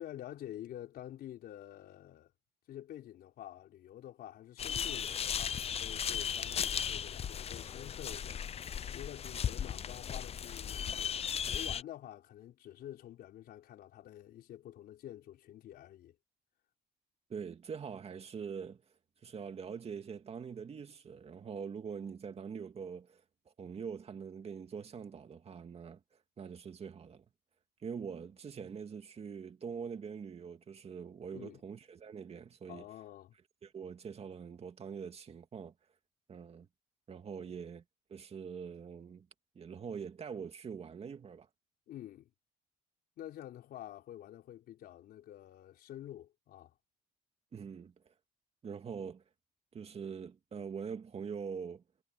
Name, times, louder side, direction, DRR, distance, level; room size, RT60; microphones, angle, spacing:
voice 1, 0.0-2.3 2.7-16.2 31.3-31.6 32.7-33.4 37.4-37.5 41.9-42.3 43.2-46.8, left 12 dB, 65° left, 4.2 m, -48 dB
sound 1, 4.6-11.8, left 8 dB, 35° left, 0.6 m, -36 dB
voice 2, 17.3-18.8 19.2-26.0 26.4-27.2 27.8-32.8 33.6-35.7 36.3-36.7 37.1-37.8 38.1-39.3 39.6-41.5 47.5-48.1 48.6-49.2 49.7-51.8, right 6 dB, 35° right, 2.3 m, -44 dB
cardioid pair, 110°, 17 cm